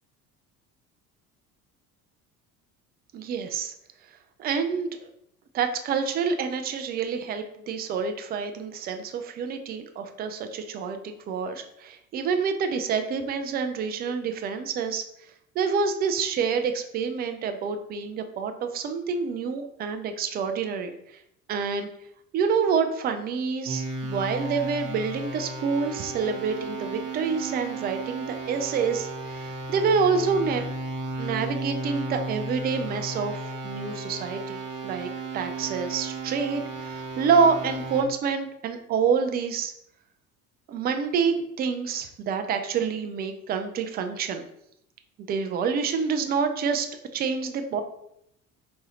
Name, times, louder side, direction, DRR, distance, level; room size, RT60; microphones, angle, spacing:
voice 1, 3.1-3.7 4.4-4.9 5.5-15.0 15.6-20.9 21.5-21.9 22.3-30.6 31.2-39.7 40.7-44.5 45.3-46.9 47.1-47.8, right 5 dB, 25° right, 7 dB, 0.3 m, -27 dB
sound 1, 23.7-38.0, right 2 dB, 40° right, 0.9 m, -34 dB
3.9 x 2.7 x 3.1 m, 0.75 s
figure-of-eight pair, 60°, 45 cm